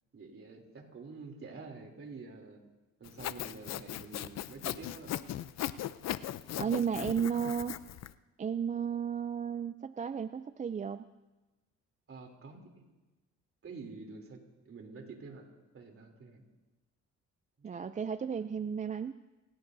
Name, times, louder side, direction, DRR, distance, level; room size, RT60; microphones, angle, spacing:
voice 1, 0.1-2.6 3.0-5.1 6.6-6.7 12.1-12.6 13.6-14.4 14.6-15.4 15.7-16.4 17.6-17.9 18.3-18.4, right 4 dB, 45° right, 2 dB, 3.2 m, -48 dB
Sawing, 3.0-8.1, left 12 dB, 60° left, 0.6 m, -38 dB
voice 2, 6.6-7.8 8.4-11.1 17.6-19.1, right 7 dB, 25° right, 12 dB, 0.4 m, -33 dB
25.5 x 17.5 x 2.7 m, 1.1 s
cardioid pair, 90°, 30 cm